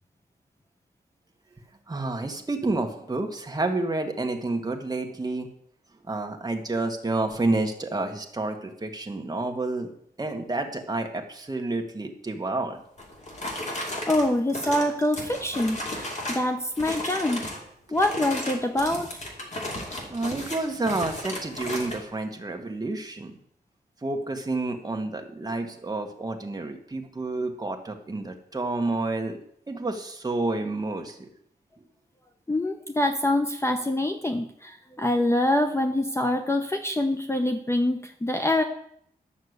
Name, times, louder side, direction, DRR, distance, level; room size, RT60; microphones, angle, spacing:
voice 1, 1.9-5.5 6.1-9.9 10.2-12.8 20.1-23.3 24.0-29.4 29.7-31.3, right 2 dB, 20° right, 3 dB, 1.4 m, -29 dB
sound 1, 13.0-16.5 16.8-17.6 17.9-22.0, left 1 dB, 45° left, 2.8 m, -34 dB
voice 2, 14.1-17.4 17.9-19.1 32.5-38.6, left 1 dB, 15° left, 5 dB, 0.7 m, -25 dB
11.5 x 6.5 x 7.9 m, 0.68 s
wide cardioid pair, 175°, 17 cm